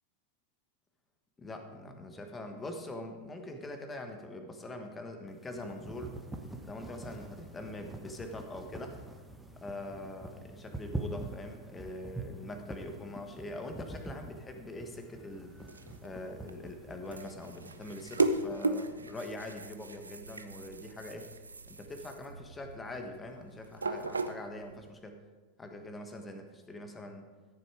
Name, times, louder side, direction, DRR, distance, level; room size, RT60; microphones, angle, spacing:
voice 1, 1.4-6.2 6.6-8.9 9.6-15.7 16.0-21.3 21.7-25.2 25.6-27.2, left 1 dB, 15° left, 5 dB, 1.4 m, -43 dB
sound 1, 5.3-18.5, right 2 dB, 5° right, 1.0 m, -45 dB
sound 2, 15.3-24.9, right 2 dB, 75° right, 0.5 m, -37 dB
13.5 x 7.1 x 4.9 m, 1.3 s
figure-of-eight pair, 90°, 0 cm